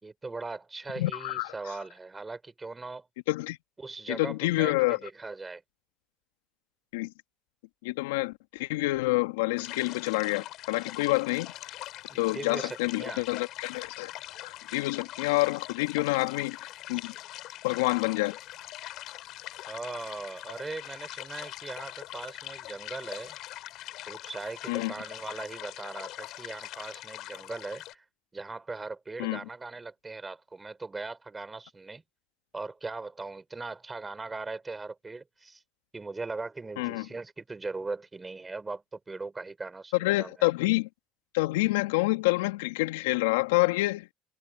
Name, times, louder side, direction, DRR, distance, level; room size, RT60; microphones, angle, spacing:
voice 1, 0.0-3.1 3.8-5.6 12.1-13.3 19.7-23.4 24.1-28.0 28.3-32.0 32.5-35.6 35.9-40.3, right 3 dB, 20° right, 5.2 m, -39 dB
voice 2, 1.0-1.5 3.3-3.6 4.1-5.0 6.9-7.1 7.8-11.5 12.1-14.1 14.4-16.6 16.9-17.1 17.6-18.4 24.7-24.9 29.2-29.4 36.8-37.1 39.9-40.9 41.3-44.1, left 21 dB, 80° left, 1.7 m, -27 dB
sound 1, 9.6-27.9, left 15 dB, 60° left, 4.1 m, -42 dB
hypercardioid pair, 75°, 0 cm